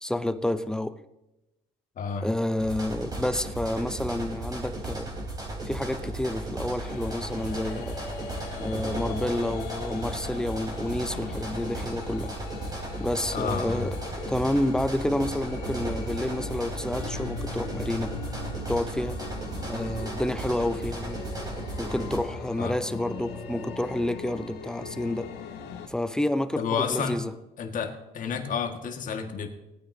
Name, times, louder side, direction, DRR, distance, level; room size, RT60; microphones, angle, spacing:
voice 1, 0.0-0.9 2.2-5.1 5.6-8.0 8.6-12.3 13.0-14.0 14.3-18.2 18.7-19.2 19.7-21.2 21.8-25.3 25.9-27.3, left 1 dB, 5° left, 12 dB, 0.6 m, -29 dB
voice 2, 2.0-2.3 13.3-13.9 22.6-22.8 26.6-27.2 27.6-29.5, left 6 dB, 50° left, 4 dB, 1.8 m, -30 dB
sound 1, 2.6-22.2, right 2 dB, 25° right, 3.9 m, -35 dB
sound 2, 6.8-25.9, left 4 dB, 85° left, 1.9 m, -40 dB
18.5 x 9.3 x 2.8 m, 0.97 s
cardioid pair, 110°, 17 cm